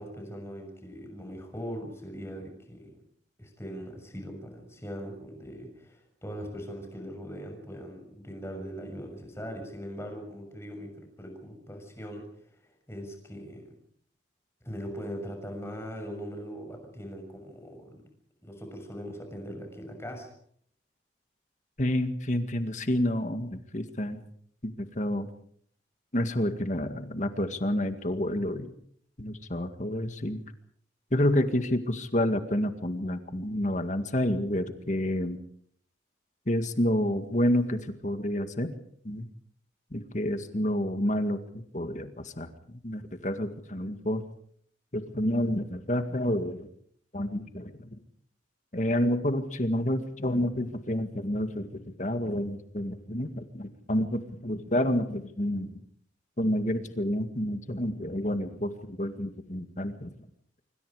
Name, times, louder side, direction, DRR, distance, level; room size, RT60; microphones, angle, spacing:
voice 1, 0.0-2.9 3.4-12.3 12.6-13.7 14.6-18.0 18.4-20.3, equal, 15° left, 4 dB, 6.6 m, -40 dB
voice 2, 21.8-24.2 24.6-25.3 26.1-28.7 29.2-30.4 31.1-35.4 36.5-38.7 39.0-39.3 39.9-44.2 44.9-46.7 47.1-48.0 48.7-55.8 56.4-60.1, left 1 dB, 40° left, 8 dB, 2.0 m, -29 dB
25.5 x 25.0 x 5.0 m, 0.62 s
head